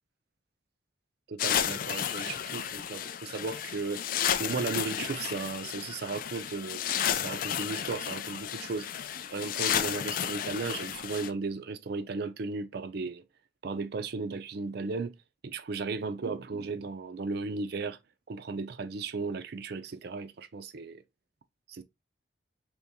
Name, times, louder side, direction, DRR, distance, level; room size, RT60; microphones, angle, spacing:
voice 1, 1.3-4.0 4.4-8.9 9.3-13.2 13.6-15.2 15.4-18.0 18.3-21.0 21.7-21.8, right 4 dB, 55° right, 0.4 m, -35 dB
sound 1, 1.4-11.3, left 9 dB, 50° left, 0.3 m, -32 dB
3.5 x 3.0 x 2.8 m
head